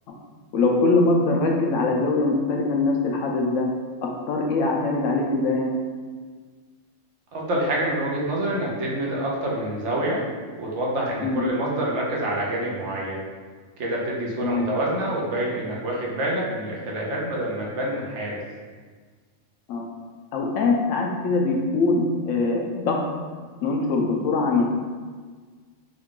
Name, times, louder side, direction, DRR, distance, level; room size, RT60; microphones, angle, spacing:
voice 1, 0.5-3.7 4.0-5.8 11.2-11.4 14.4-14.7 19.7-19.9 20.3-23.1 23.6-24.6, left 3 dB, 85° left, 1 dB, 1.0 m, -22 dB
voice 2, 7.3-10.3 10.6-13.2 13.8-18.4, right 1 dB, 70° right, -3 dB, 1.0 m, -27 dB
3.7 x 2.3 x 3.6 m, 1.5 s
omnidirectional pair, 1.3 m